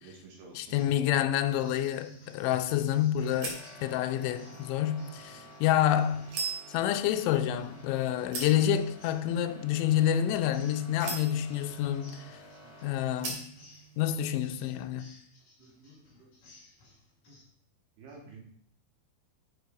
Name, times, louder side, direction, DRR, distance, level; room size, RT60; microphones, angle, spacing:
voice 1, 0.0-0.8 18.0-18.4, right 4 dB, 85° right, 4.9 m, -49 dB
voice 2, 0.6-6.3 6.7-12.4 12.8-13.4 14.0-15.1, left 11 dB, 85° left, 3.0 m, -28 dB
sound 1, 0.6-1.1 1.4-17.4, left 1 dB, 45° left, 5.8 m, -58 dB
sound 2, 1.4-14.1, right 4 dB, 50° right, 3.9 m, -44 dB
sound 3, 3.2-12.9, left 1 dB, 5° right, 3.3 m, -52 dB
10.5 x 7.1 x 4.8 m
omnidirectional pair, 5.3 m